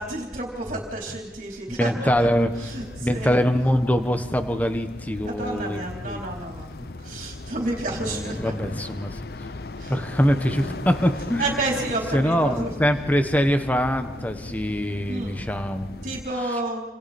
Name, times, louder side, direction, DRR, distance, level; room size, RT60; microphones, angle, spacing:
voice 1, 0.0-2.3 2.6-3.4 5.2-8.5 9.8-10.1 10.5-10.9 11.4-12.7 15.1-15.4 16.0-16.8, right 2 dB, 45° right, -1 dB, 4.2 m, -31 dB
voice 2, 1.8-2.5 3.0-6.2 7.9-9.2 9.9-11.5 12.1-16.1, equal, 10° left, 7 dB, 1.4 m, -23 dB
sound 1, 2.0-16.2, left 2 dB, 60° left, 0.8 m, -38 dB
29.0 x 26.5 x 4.5 m, 1.2 s
head